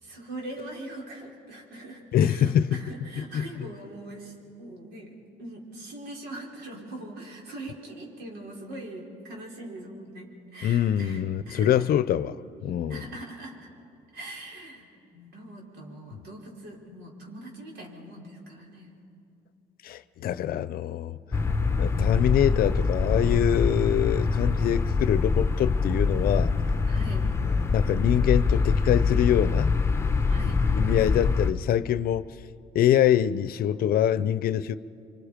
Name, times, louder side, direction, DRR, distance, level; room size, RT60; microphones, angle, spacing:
voice 1, 0.0-11.7 12.9-13.7 14.1-14.9 15.1-19.0 26.9-27.3 30.3-30.6, right 1 dB, 75° right, 5.3 m, -42 dB
voice 2, 2.1-2.8 3.3-3.7 10.6-12.4 12.6-13.0 19.8-21.2 21.8-26.5 27.7-29.7 30.8-32.3 32.7-34.8, left 10 dB, 60° left, 0.7 m, -24 dB
sound 1, 21.3-31.5, left 4 dB, 15° left, 1.0 m, -24 dB
29.5 x 25.0 x 5.2 m
cardioid pair, 110°, 17 cm